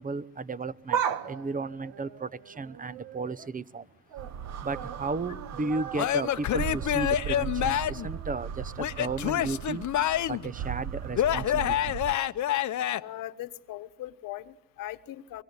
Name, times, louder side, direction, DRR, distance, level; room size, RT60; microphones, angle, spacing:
voice 1, 0.0-3.9 4.6-9.8 10.3-12.0, right 3 dB, 25° right, 0.9 m, -34 dB
sound 1, 0.8-3.5 3.9-4.3 4.6-8.6 8.9-9.0 10.0-10.1, right 9 dB, 80° right, 1.5 m, -37 dB
sound 2, 4.2-12.2, right 8 dB, 50° right, 1.0 m, -38 dB
Male speech man speaking / Yell / Laughter, 5.9-8.1 8.8-10.5 11.1-13.0, left 11 dB, 55° left, 0.9 m, -27 dB
voice 2, 12.9-15.4, left 14 dB, 75° left, 1.3 m, -40 dB
24.5 x 24.0 x 9.7 m
supercardioid pair, 80°, 34 cm